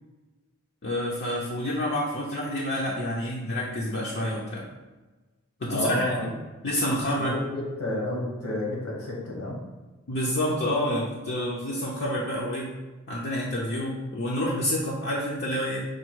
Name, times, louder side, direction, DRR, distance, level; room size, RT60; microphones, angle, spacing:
voice 1, 0.8-4.6 5.6-6.1 6.6-7.3 10.1-12.7 13.1-15.8, left 1 dB, 50° left, -4 dB, 0.6 m, -28 dB
voice 2, 5.7-6.3 7.1-9.6, left 1 dB, 85° left, -3 dB, 1.4 m, -30 dB
4.6 x 2.3 x 4.5 m, 1.2 s
head